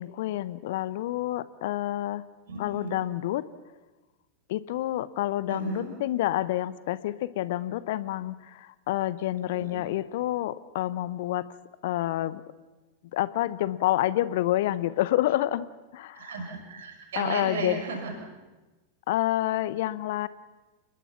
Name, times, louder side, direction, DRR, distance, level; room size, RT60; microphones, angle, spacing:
voice 1, 0.0-2.2 2.6-3.4 4.5-11.4 11.8-12.4 13.1-15.7 15.9-16.3 17.2-17.8 19.1-20.3, left 14 dB, 55° left, 17 dB, 0.8 m, -28 dB
voice 2, 2.5-3.0 5.5-5.9 9.5-9.9 16.1-18.3, right 3 dB, 60° right, 2 dB, 6.0 m, -35 dB
29.0 x 20.5 x 5.9 m, 1.2 s
figure-of-eight pair, 90°, 0 cm